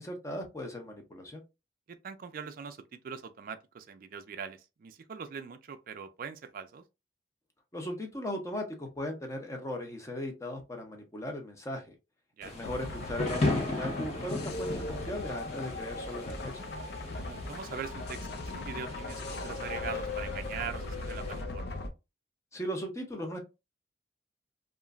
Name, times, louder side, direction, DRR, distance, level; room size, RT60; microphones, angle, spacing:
voice 1, 0.0-1.4 7.7-11.9 12.4-16.5 22.5-23.4, left 1 dB, 15° left, 0.6 m, -38 dB
voice 2, 1.9-2.8 3.0-6.8 12.4-12.5 17.2-18.3 18.5-21.7, right 6 dB, 50° right, 0.4 m, -42 dB
Thunder / Rain, 12.4-21.4, left 2 dB, 40° left, 0.9 m, -37 dB
sound 1, 12.6-21.9, left 2 dB, 60° left, 0.5 m, -38 dB
2.9 x 2.5 x 2.3 m
head